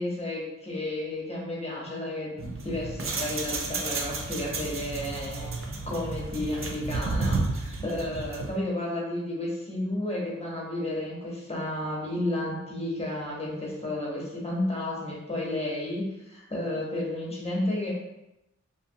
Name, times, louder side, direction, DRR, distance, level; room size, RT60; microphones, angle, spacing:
voice 1, 0.0-2.4 2.6-5.6 5.8-17.9, left 1 dB, 20° left, -4 dB, 0.8 m, -32 dB
sound 1, 2.4-8.6, right 3 dB, 45° right, 0.4 m, -32 dB
2.6 x 2.4 x 2.6 m, 0.91 s
wide cardioid pair, 70°, 30 cm